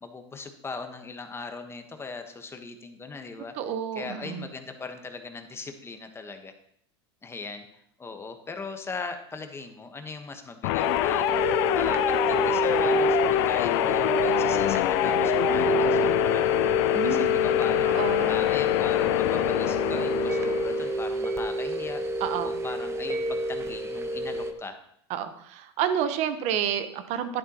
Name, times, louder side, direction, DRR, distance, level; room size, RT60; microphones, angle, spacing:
voice 1, 0.0-3.5 3.9-6.5 7.2-7.7 8.0-11.4 11.7-16.4 17.0-18.0 18.3-22.0 22.4-24.8, left 4 dB, 15° left, 6 dB, 1.3 m, -39 dB
voice 2, 3.4-4.5 16.9-17.3 17.9-18.5 22.2-22.5 25.1-27.4, right 9 dB, 50° right, 10 dB, 1.2 m, -30 dB
sound 1, 10.6-21.0, left 16 dB, 60° left, 0.4 m, -25 dB
sound 2, 10.8-24.5, right 2 dB, 20° right, 1.1 m, -29 dB
11.5 x 11.0 x 3.0 m, 0.68 s
hypercardioid pair, 100°, 14 cm